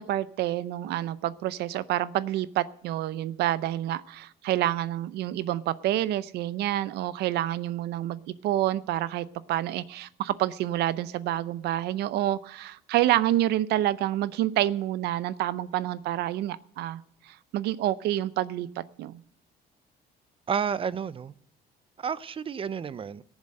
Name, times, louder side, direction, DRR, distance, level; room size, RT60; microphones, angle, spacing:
voice 1, 0.0-17.0 17.3-19.2, right 13 dB, 75° right, 0.6 m, -28 dB
voice 2, 20.5-21.3 22.0-23.2, right 7 dB, 30° right, 0.5 m, -31 dB
18.0 x 7.2 x 6.5 m
cardioid pair, 110°, 17 cm